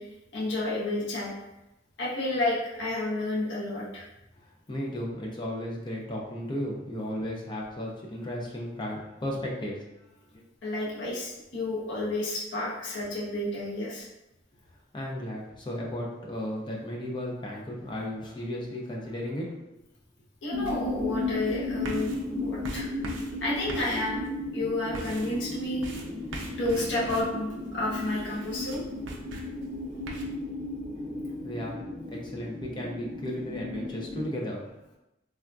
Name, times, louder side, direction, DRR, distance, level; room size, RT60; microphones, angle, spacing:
voice 1, 0.0-1.3 2.0-4.0 10.6-14.1 20.4-22.9 23.4-24.2 24.5-25.9 26.6-28.8, left 1 dB, 65° left, -5 dB, 0.7 m, -31 dB
voice 2, 4.7-10.4 14.9-19.6 31.4-31.8 32.1-34.8, left 1 dB, 25° left, -2 dB, 0.5 m, -35 dB
sound 1, 20.5-34.2, left 2 dB, 10° right, 0.8 m, -35 dB
sound 2, 20.7-30.2, right 2 dB, 70° right, 0.4 m, -43 dB
3.4 x 2.5 x 2.3 m, 0.93 s
head